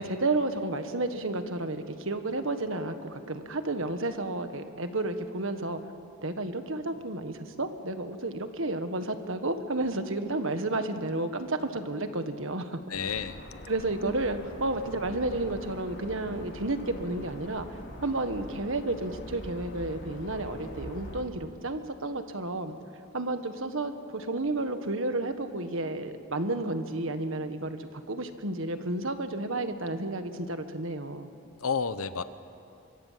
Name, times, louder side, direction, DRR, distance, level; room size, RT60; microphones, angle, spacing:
voice 1, 0.0-5.8 6.2-12.8 13.7-17.7 18.0-22.7 23.1-31.3, right 2 dB, 60° right, 8 dB, 1.6 m, -31 dB
voice 2, 12.9-13.4 31.6-32.2, left 6 dB, 75° left, 12 dB, 0.9 m, -30 dB
sound 1, 12.9-21.2, left 1 dB, 55° left, 2.8 m, -43 dB
26.0 x 23.5 x 7.6 m, 2.6 s
head